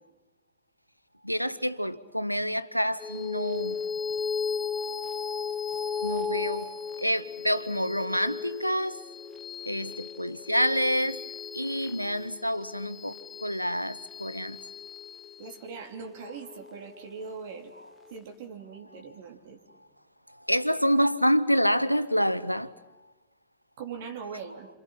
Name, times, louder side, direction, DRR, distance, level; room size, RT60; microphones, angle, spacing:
voice 1, 1.2-3.8 6.0-6.7 7.0-9.0 9.7-11.2 11.5-13.1 13.4-14.6 20.5-22.7, equal, 90° left, 0.7 m, -27 dB
sound 1, 3.0-17.8, left 6 dB, 20° left, 1.3 m, -36 dB
voice 2, 15.4-17.7 18.1-19.6 23.8-24.7, right 5 dB, 55° right, 3.4 m, -41 dB
28.0 x 27.5 x 5.8 m
figure-of-eight pair, 90°, 0 cm